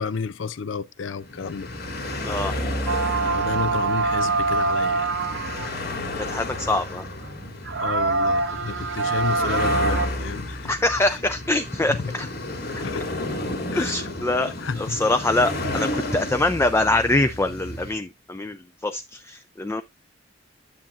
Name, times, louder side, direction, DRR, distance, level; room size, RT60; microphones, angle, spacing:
voice 1, 0.0-1.8 3.3-5.1 7.8-10.7 11.0-11.2 11.9-12.1 12.8-13.1 13.7-14.0 14.4-15.0, left 5 dB, 80° left, 0.5 m, -31 dB
sound 1, 1.1-17.9, left 1 dB, 55° left, 2.4 m, -32 dB
voice 2, 2.2-2.5 6.2-7.1 10.6-12.3 12.8-12.9 13.8-14.5 14.8-19.8, left 2 dB, 15° left, 0.4 m, -24 dB
sound 2, 2.9-5.9 6.8-6.9 7.3-7.4 7.7-10.1, right 3 dB, 65° right, 1.0 m, -24 dB
10.0 x 7.1 x 2.5 m
head